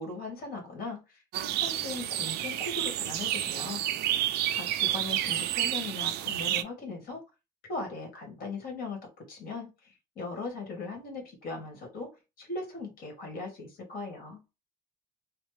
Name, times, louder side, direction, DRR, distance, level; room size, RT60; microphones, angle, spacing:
voice 1, 0.0-3.8 4.5-7.2 7.7-12.1 12.4-14.4, left 3 dB, 60° left, 1.6 m, -39 dB
sound 1, 1.3-6.6, right 12 dB, 75° right, 0.4 m, -30 dB
3.1 x 2.0 x 3.2 m
cardioid pair, 110°, 17 cm